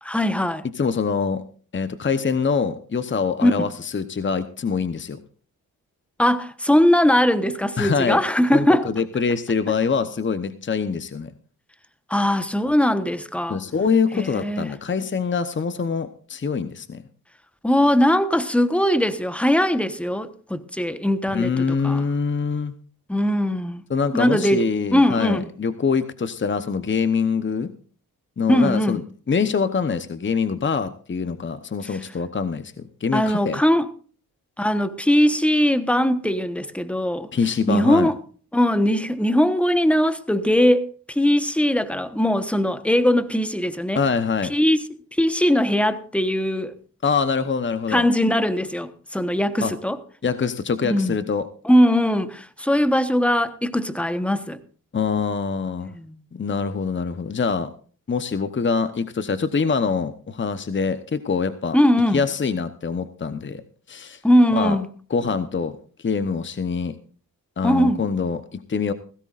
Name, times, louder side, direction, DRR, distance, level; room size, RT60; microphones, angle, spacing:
voice 1, 0.0-0.6 3.4-3.7 6.2-8.9 12.1-13.6 14.1-14.7 17.6-22.0 23.1-23.8 24.1-24.6 24.9-25.5 28.5-29.0 33.1-33.9 34.6-37.3 37.7-38.2 38.5-44.0 44.5-44.8 45.2-46.7 47.9-50.0 50.8-51.1 51.6-54.6 55.8-56.2 61.7-62.2 64.2-64.9 67.6-68.0, equal, 5° left, 1.1 m, -20 dB
voice 2, 0.8-1.4 1.7-5.2 7.8-8.2 8.5-11.3 12.6-12.7 13.5-17.0 21.3-22.7 23.9-27.7 28.4-33.6 37.3-38.1 43.9-44.5 47.0-48.1 49.6-49.7 50.2-51.5 54.9-55.9 56.3-57.7 58.1-61.8 62.1-63.6 63.9-64.2 64.5-64.8 65.1-66.9 67.6-68.9, left 5 dB, 30° left, 0.9 m, -24 dB
17.0 x 15.5 x 2.5 m
cardioid pair, 60°, 37 cm